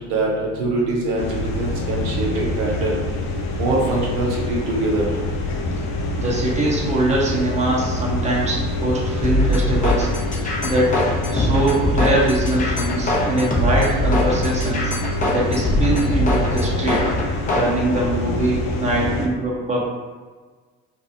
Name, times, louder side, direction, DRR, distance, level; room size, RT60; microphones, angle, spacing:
voice 1, 0.1-2.9 3.5-5.0, right 2 dB, 75° right, -3 dB, 0.7 m, -23 dB
sound 1, 1.2-19.3, left 2 dB, 85° left, 0.5 m, -26 dB
voice 2, 6.2-10.1 10.6-11.0 11.3-14.9 15.3-17.1 17.5-19.8, right 2 dB, 20° right, -4 dB, 0.9 m, -22 dB
sound 2, 9.2-17.7, left 1 dB, 20° left, 0.7 m, -22 dB
2.4 x 2.4 x 2.8 m, 1.4 s
hypercardioid pair, 65°, 35 cm